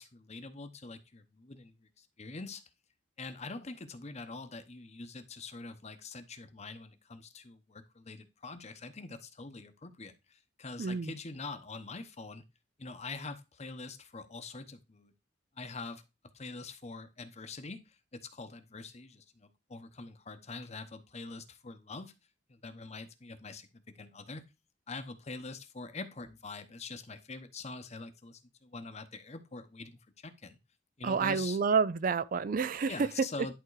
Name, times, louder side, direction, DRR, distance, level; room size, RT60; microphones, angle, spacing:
voice 1, 0.0-2.6 3.2-12.4 12.8-15.1 15.6-16.0 16.3-22.1 22.5-23.7 23.9-24.4 24.9-30.6 31.0-31.6 32.9-33.5, left 3 dB, 40° left, 1.0 m, -44 dB
voice 2, 10.8-11.1 31.0-32.9, right 5 dB, 50° right, 0.4 m, -29 dB
11.0 x 3.7 x 4.8 m
head